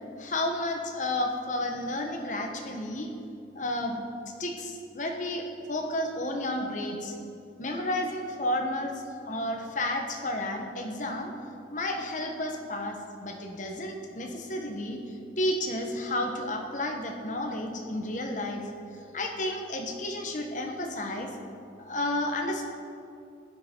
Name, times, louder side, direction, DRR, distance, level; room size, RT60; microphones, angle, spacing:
voice 1, 0.2-3.1 3.5-4.0 4.4-7.1 7.6-11.3 11.7-18.6 19.1-21.3 21.8-22.7, left 1 dB, 45° left, 3 dB, 1.3 m, -32 dB
15.5 x 10.5 x 4.6 m, 2.5 s
head